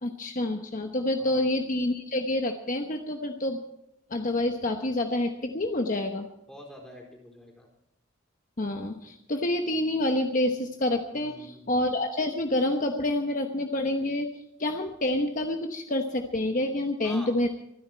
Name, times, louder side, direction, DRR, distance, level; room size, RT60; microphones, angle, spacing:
voice 1, 0.0-3.6 4.1-6.3 8.6-17.5, left 1 dB, 40° left, 4 dB, 1.0 m, -28 dB
voice 2, 6.5-7.7 11.1-11.8 17.0-17.5, equal, 5° left, 0 dB, 4.1 m, -47 dB
25.5 x 10.0 x 4.4 m, 0.79 s
head